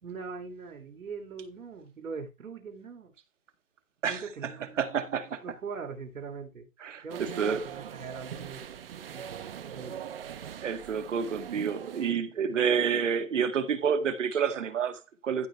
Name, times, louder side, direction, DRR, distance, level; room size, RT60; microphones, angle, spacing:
voice 1, 0.0-3.1 4.1-4.8 5.4-6.7 7.0-8.8 9.1-10.0, right 5 dB, 85° right, 2.9 m, -41 dB
voice 2, 4.0-4.5 4.8-5.4 6.8-7.6 10.6-15.5, right 7 dB, 65° right, 2.1 m, -29 dB
sound 1, 7.1-12.1, right 9 dB, 45° right, 1.2 m, -41 dB
14.5 x 6.2 x 3.3 m
hypercardioid pair, 165°, 41 cm